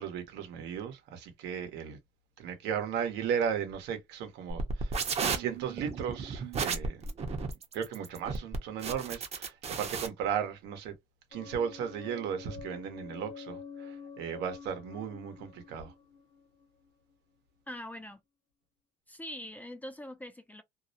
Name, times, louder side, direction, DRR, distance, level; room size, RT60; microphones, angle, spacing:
voice 1, 0.0-2.0 2.4-5.0 5.3-7.0 7.7-10.9 11.3-15.9, right 8 dB, 85° right, 0.8 m, -35 dB
sound 1, 4.5-10.1, right 5 dB, 40° right, 0.6 m, -34 dB
sound 2, 11.3-17.1, left 6 dB, 45° left, 0.9 m, -47 dB
voice 2, 17.7-18.2 19.1-20.6, left 1 dB, 10° left, 0.3 m, -43 dB
2.3 x 2.0 x 2.6 m
cardioid pair, 110°, 17 cm